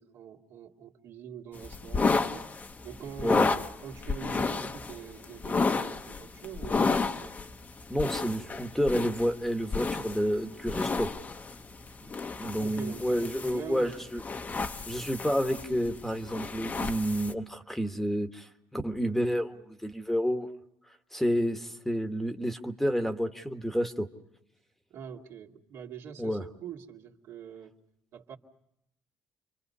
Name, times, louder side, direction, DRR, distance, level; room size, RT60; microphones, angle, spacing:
voice 1, 0.0-2.6 2.8-3.5 3.8-7.4 12.6-14.0 24.9-27.8 28.1-28.4, right 8 dB, 70° right, 0 dB, 2.3 m, -44 dB
sound 1, 1.5-17.3, left 4 dB, 30° left, 1.1 m, -32 dB
voice 2, 7.9-11.1 12.4-14.2 14.8-20.5 21.1-24.1 26.2-26.4, equal, 5° left, 6 dB, 1.5 m, -29 dB
30.0 x 24.0 x 5.6 m, 0.79 s
cardioid pair, 95°, 5 cm